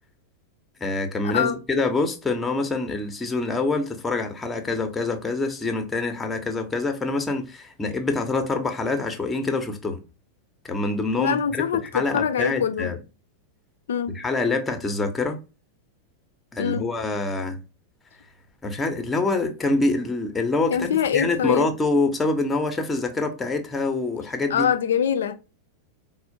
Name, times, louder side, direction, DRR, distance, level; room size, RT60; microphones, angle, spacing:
voice 1, 0.8-10.0 10.7-13.0 14.2-15.4 16.5-17.6 18.6-20.9 21.1-24.7, left 3 dB, 15° left, 0.6 m, -25 dB
voice 2, 11.2-12.9 13.9-14.2 16.6-16.9 20.7-21.7 24.5-25.3, left 8 dB, 60° left, 0.4 m, -24 dB
4.2 x 2.0 x 2.5 m
figure-of-eight pair, 90°, 0 cm